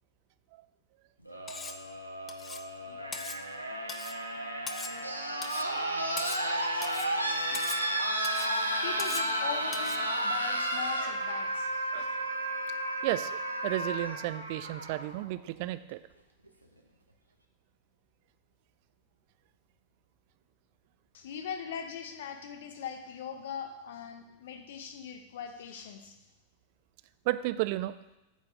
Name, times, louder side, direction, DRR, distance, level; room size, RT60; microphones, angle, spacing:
sound 1, 1.3-15.2 16.5-16.6, right 1 dB, 90° right, 0.8 m, -33 dB
Cutlery silverware, 1.5-1.8 2.3-2.7 3.1-3.4 3.9-4.2 4.7-5.0 5.4-5.7 6.2-6.5 6.8-7.1 7.5-7.9 8.2-8.5 9.0-9.3 9.7-10.0, left 4 dB, 20° left, 0.5 m, -41 dB
voice 1, 8.8-11.7 21.1-26.1, left 7 dB, 55° left, 6 dB, 1.1 m, -40 dB
voice 2, 11.9-12.2 13.0-13.3 13.6-16.0 27.3-27.9, right 17 dB, 45° right, 13 dB, 0.4 m, -33 dB
8.6 x 4.1 x 6.3 m, 0.96 s
figure-of-eight pair, 90°, 0 cm